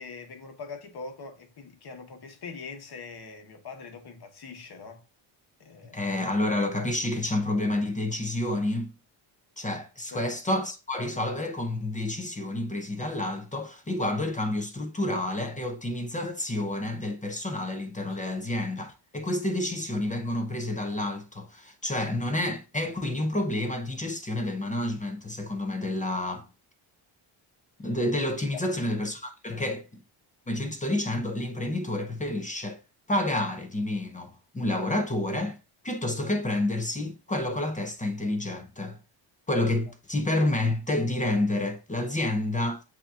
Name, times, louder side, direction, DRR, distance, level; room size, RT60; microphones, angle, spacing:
voice 1, 0.0-5.0 5.6-6.0 10.1-10.3 18.1-18.2 28.5-28.7 29.5-29.7, left 4 dB, 50° left, 1.2 m, -42 dB
voice 2, 5.9-8.9 9.6-26.5 27.8-30.0 30.5-32.8 33.1-35.6 35.8-39.0 39.5-42.8, left 1 dB, 15° left, 0.6 m, -29 dB
7.8 x 2.8 x 2.4 m
cardioid pair, 150°, 49 cm